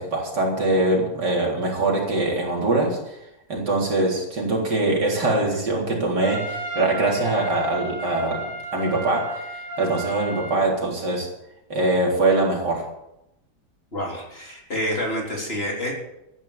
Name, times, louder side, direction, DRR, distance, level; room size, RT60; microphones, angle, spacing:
voice 1, 0.0-3.0 3.5-9.4 9.8-11.3 11.7-12.8, right 2 dB, 85° right, -2 dB, 4.3 m, -23 dB
Trumpet, 6.2-10.6, right 2 dB, 90° left, 6.5 m, -33 dB
voice 2, 13.9-15.9, equal, 35° left, -1 dB, 3.9 m, -28 dB
14.0 x 10.5 x 7.2 m, 0.86 s
omnidirectional pair, 1.8 m